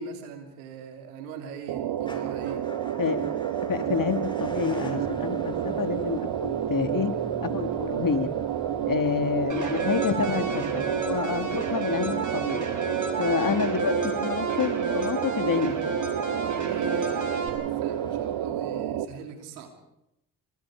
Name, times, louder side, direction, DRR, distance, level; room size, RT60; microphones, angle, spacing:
voice 1, 0.0-2.7 13.3-13.7 16.4-19.7, right 5 dB, 90° right, 5 dB, 3.1 m, -40 dB
sound 1, 1.7-19.1, right 11 dB, 70° right, 1.3 m, -30 dB
Motor vehicle (road) / Engine starting / Idling, 2.0-19.0, left 1 dB, 10° left, 6.2 m, -46 dB
voice 2, 3.7-7.1 7.4-8.3 8.8-12.6 13.2-15.7, left 6 dB, 50° left, 8 dB, 2.7 m, -28 dB
sound 2, 9.5-17.5, right 3 dB, 45° right, 5.9 m, -32 dB
27.0 x 25.0 x 5.1 m, 0.83 s
hypercardioid pair, 45°, 43 cm